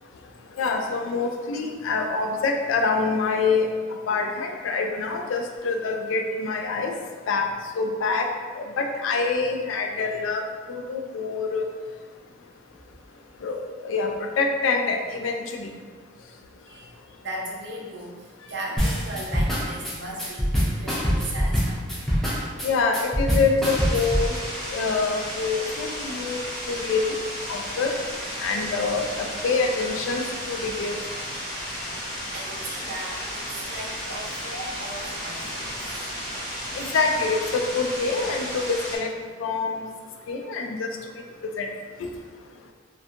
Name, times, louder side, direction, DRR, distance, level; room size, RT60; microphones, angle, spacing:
voice 1, 0.6-3.7 4.1-6.9 7.3-7.5 7.8-8.3 8.6-11.6 13.4-15.7 22.6-24.3 24.7-26.4 26.7-27.2 27.5-27.9 28.4-30.2 30.5-31.0 36.7-39.1 39.4-39.8 40.3-40.9 41.6-41.7 42.0-42.1, left 4 dB, 75° left, 3 dB, 0.3 m, -25 dB
voice 2, 16.7-21.9 32.3-36.1, right 1 dB, 60° right, -3 dB, 0.5 m, -37 dB
sound 1, 18.8-24.3, equal, ahead, 0.4 m, -24 dB
sound 2, 23.6-39.0, equal, 45° left, 1.2 m, -33 dB
2.7 x 2.2 x 2.4 m, 1.5 s
head